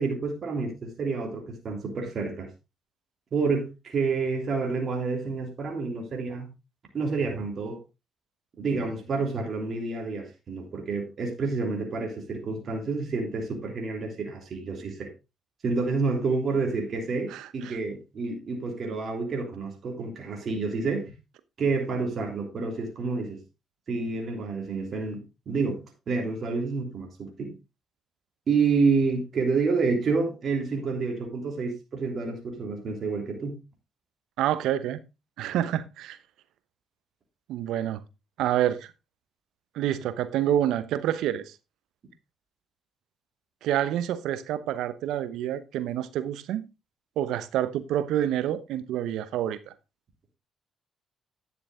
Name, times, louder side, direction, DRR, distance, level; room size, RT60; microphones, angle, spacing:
voice 1, 0.0-2.5 3.3-6.5 6.9-7.8 8.6-15.1 15.6-21.1 21.6-23.4 23.9-27.5 28.5-33.6, right 4 dB, 55° right, 3.1 m, -29 dB
voice 2, 17.3-17.8 34.4-35.0 35.4-36.2 37.5-38.0 38.4-38.9 39.7-41.5 43.6-46.6 47.2-49.7, right 11 dB, 75° right, 0.8 m, -28 dB
10.5 x 6.8 x 3.6 m
supercardioid pair, 55°, 0 cm